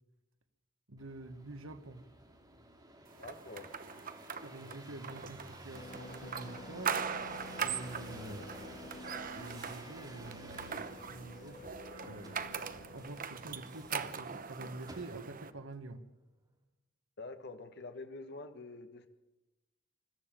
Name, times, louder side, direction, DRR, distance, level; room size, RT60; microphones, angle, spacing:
voice 1, 0.9-2.0 4.4-7.0 7.6-10.8 11.1-11.6 12.0-16.0, right 2 dB, 90° right, 9 dB, 1.5 m, -47 dB
sound 1, 1.0-15.5 16.1-16.6, right 1 dB, 20° right, 2.8 m, -54 dB
voice 2, 3.2-3.7 4.6-4.8 17.2-19.1, left 3 dB, 55° left, 7 dB, 1.4 m, -47 dB
sound 2, 3.2-15.5, right 7 dB, 45° right, 0.9 m, -41 dB
sound 3, 5.7-14.3, left 2 dB, 40° left, 2.5 m, -51 dB
21.5 x 13.5 x 8.9 m, 1.0 s
head